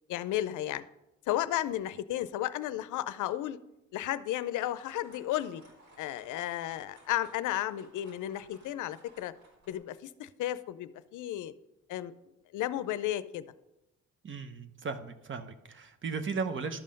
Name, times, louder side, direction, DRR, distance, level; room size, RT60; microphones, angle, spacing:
voice 1, 0.1-0.9 1.3-3.6 3.9-5.6 6.0-9.3 9.7-11.5 11.9-12.1 12.5-13.4, left 13 dB, 80° left, 14 dB, 0.5 m, -33 dB
sound 1, 4.0-9.8, right 1 dB, 70° right, 4.2 m, -59 dB
voice 2, 14.2-16.8, right 5 dB, 40° right, 9 dB, 0.9 m, -36 dB
12.0 x 5.6 x 5.2 m, 0.93 s
cardioid pair, 90°, 30 cm